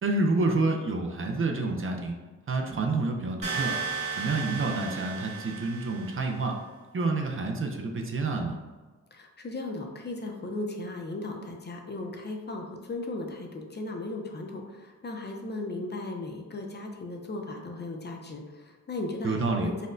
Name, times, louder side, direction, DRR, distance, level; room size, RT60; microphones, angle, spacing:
voice 1, 0.0-2.1 2.5-3.7 4.2-6.6 6.9-8.6 19.2-19.7, right 3 dB, 40° right, 2 dB, 0.5 m, -28 dB
sound 1, 3.4-6.3, right 6 dB, 85° right, 1.2 m, -34 dB
voice 2, 9.1-19.9, left 2 dB, 35° left, 2 dB, 0.5 m, -36 dB
4.1 x 2.1 x 2.5 m, 1.3 s
cardioid pair, 70°, 31 cm